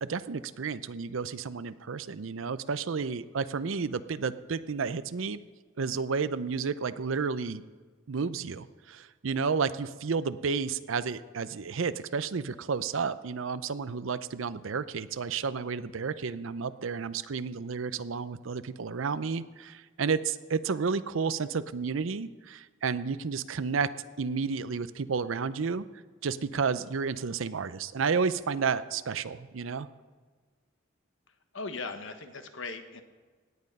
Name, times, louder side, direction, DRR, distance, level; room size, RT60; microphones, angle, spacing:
voice 1, 0.0-5.4 5.8-7.6 8.1-23.9 24.2-25.8 26.2-29.9, right 5 dB, 75° right, 15 dB, 0.6 m, -31 dB
voice 2, 31.5-33.0, left 3 dB, 70° left, 8 dB, 1.2 m, -38 dB
17.5 x 9.8 x 5.4 m, 1.4 s
head